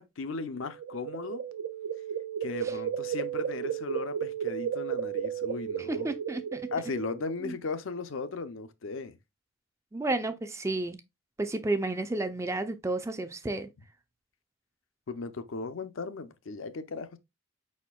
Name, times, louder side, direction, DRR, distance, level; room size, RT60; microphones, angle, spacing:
voice 1, 0.0-1.4 2.4-6.1 6.7-9.2 15.1-17.2, left 4 dB, 65° left, 0.5 m, -37 dB
sound 1, 0.6-7.3, right 9 dB, 80° right, 0.5 m, -34 dB
voice 2, 5.9-6.6 7.4-7.5 9.9-11.0 11.4-13.7, right 2 dB, 15° right, 0.4 m, -31 dB
5.0 x 4.2 x 2.3 m
head